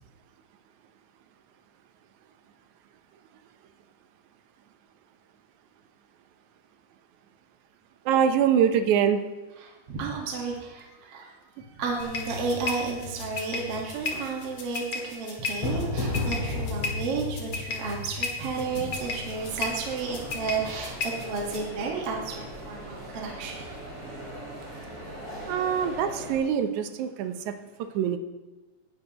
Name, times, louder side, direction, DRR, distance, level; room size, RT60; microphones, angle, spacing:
voice 1, 8.1-9.2 25.5-27.5 28.0-28.2, right 8 dB, 75° right, 9 dB, 2.0 m, -24 dB
voice 2, 9.6-11.3 11.7-23.6, right 4 dB, 50° right, -1 dB, 2.2 m, -32 dB
sound 1, 12.0-21.6, left 3 dB, 50° left, 2.2 m, -33 dB
sound 2, 18.5-26.4, right 1 dB, 25° right, 5.2 m, -41 dB
17.5 x 10.5 x 2.9 m, 1.1 s
omnidirectional pair, 3.8 m